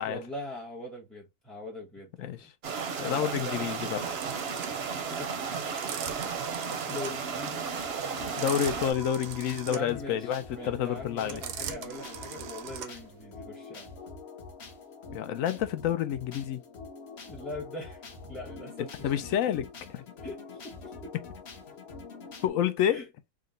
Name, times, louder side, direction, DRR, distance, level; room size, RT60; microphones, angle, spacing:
voice 1, 0.0-2.5 3.0-4.1 5.1-5.5 6.5-7.7 9.7-13.9 17.3-19.1 20.2-21.1 22.9-23.1, left 2 dB, ahead, 0.5 m, -42 dB
sound 1, 2.6-8.9, right 6 dB, 55° right, 0.8 m, -34 dB
voice 2, 3.0-4.0 8.4-11.4 15.1-16.6 19.0-19.7 19.9-20.0 22.4-23.0, left 10 dB, 70° left, 0.8 m, -29 dB
sound 2, 4.0-13.2, right 8 dB, 90° right, 1.2 m, -41 dB
sound 3, 7.8-22.5, left 4 dB, 50° left, 1.1 m, -45 dB
3.7 x 2.2 x 3.7 m
omnidirectional pair, 1.7 m